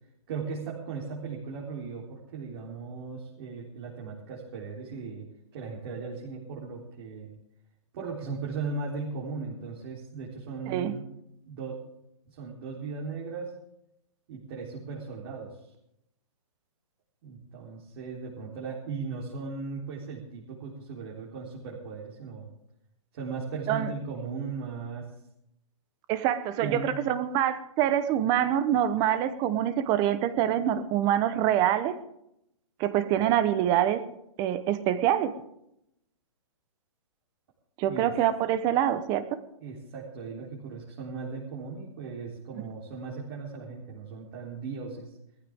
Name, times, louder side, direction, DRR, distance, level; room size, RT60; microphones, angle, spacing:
voice 1, 0.3-5.3 5.5-7.3 7.9-11.0 11.4-11.8 12.3-13.5 14.3-15.7 17.2-22.5 23.1-25.1 26.6-26.9 37.9-38.1 39.6-45.2, right 4 dB, 45° right, -4 dB, 3.7 m, -37 dB
voice 2, 26.1-31.9 32.8-34.0 34.4-35.3 37.8-39.2, right 11 dB, 25° right, 12 dB, 1.0 m, -25 dB
18.5 x 14.5 x 3.6 m, 0.78 s
hypercardioid pair, 155°, 18 cm